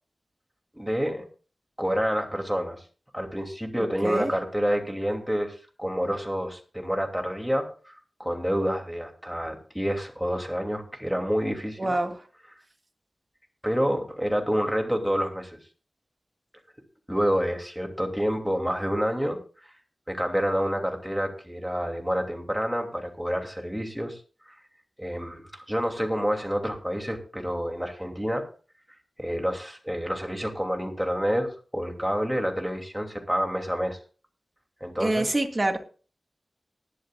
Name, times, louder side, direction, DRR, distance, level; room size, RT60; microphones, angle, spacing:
voice 1, 0.8-1.3 1.8-2.8 3.1-11.9 13.6-15.6 17.1-19.7 20.1-24.2 24.5-24.6 25.0-28.5 29.2-34.0 34.8-35.3, equal, 5° right, 3 dB, 2.7 m, -28 dB
voice 2, 11.8-12.1 35.0-35.8, right 2 dB, 30° right, 4 dB, 1.9 m, -25 dB
20.0 x 11.5 x 2.4 m, 0.38 s
wide cardioid pair, 90°, 0 cm